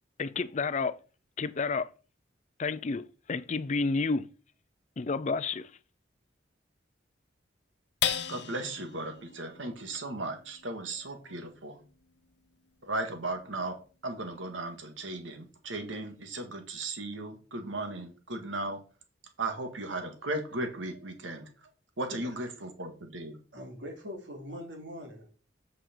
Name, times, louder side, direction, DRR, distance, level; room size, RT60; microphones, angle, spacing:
voice 1, 0.2-1.0 1.4-1.9 2.6-4.3 5.0-5.7, left 4 dB, 40° left, 0.4 m, -30 dB
sound 1, 8.0-14.7 15.2-15.3 15.7-16.2, left 9 dB, 65° left, 0.8 m, -39 dB
voice 2, 8.3-11.8 12.8-13.8 14.0-18.8 19.4-21.5 22.0-23.4, right 2 dB, 90° right, 1.9 m, -36 dB
voice 3, 23.5-25.3, equal, 70° right, 2.7 m, -42 dB
8.0 x 6.4 x 4.5 m
head